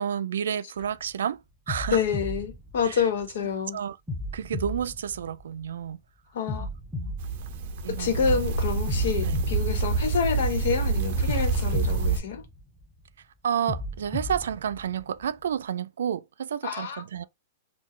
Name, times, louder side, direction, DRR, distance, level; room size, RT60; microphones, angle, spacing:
voice 1, 0.0-2.0 2.8-3.0 3.7-4.0 4.3-6.0 6.6-6.7 6.9-7.2 7.8-8.4 8.9-9.5 13.4-17.2, right 8 dB, 90° right, 0.3 m, -31 dB
sound 1, 0.8-1.1 1.7-3.5 4.1-5.9 6.5-8.3 8.9-10.7 11.3-13.1 13.7-15.5, left 1 dB, 5° right, 0.7 m, -36 dB
voice 2, 1.9-3.8 6.3-6.7 7.9-12.4 16.6-17.3, left 6 dB, 70° left, 1.1 m, -28 dB
sound 2, 7.2-12.2, right 4 dB, 45° right, 0.7 m, -27 dB
3.9 x 2.3 x 3.1 m
hypercardioid pair, 155°, 0 cm